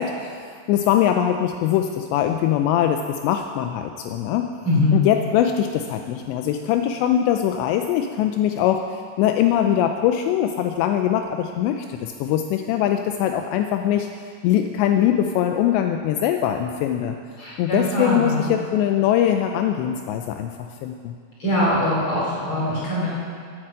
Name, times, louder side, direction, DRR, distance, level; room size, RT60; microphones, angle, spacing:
voice 1, 0.0-4.5 4.9-14.1 14.4-17.2 17.6-21.1, left 10 dB, 85° left, 5 dB, 2.8 m, -22 dB
voice 2, 4.6-5.0 17.4-18.5 21.4-23.1, left 1 dB, 30° left, -6 dB, 5.1 m, -22 dB
14.5 x 8.8 x 7.5 m, 2.2 s
omnidirectional pair, 5.0 m